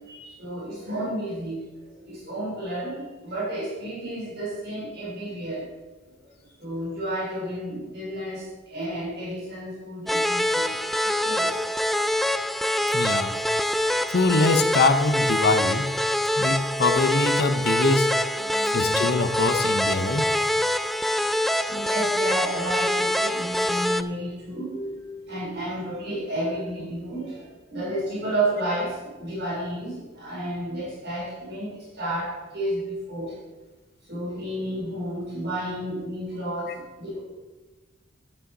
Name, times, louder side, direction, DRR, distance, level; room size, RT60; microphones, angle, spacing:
voice 1, 0.1-1.7 2.0-5.7 6.6-10.8 11.0-11.5 16.3-16.6 18.3-19.1 21.7-33.4 34.1-37.2, right 1 dB, 60° right, -6 dB, 3.9 m, -32 dB
sound 1, 10.1-24.0, left 1 dB, ahead, 0.3 m, -25 dB
voice 2, 12.9-13.3 14.1-15.9 16.4-18.1 18.7-20.4, left 3 dB, 55° left, 8 dB, 0.8 m, -23 dB
11.5 x 8.7 x 4.1 m, 1.2 s
head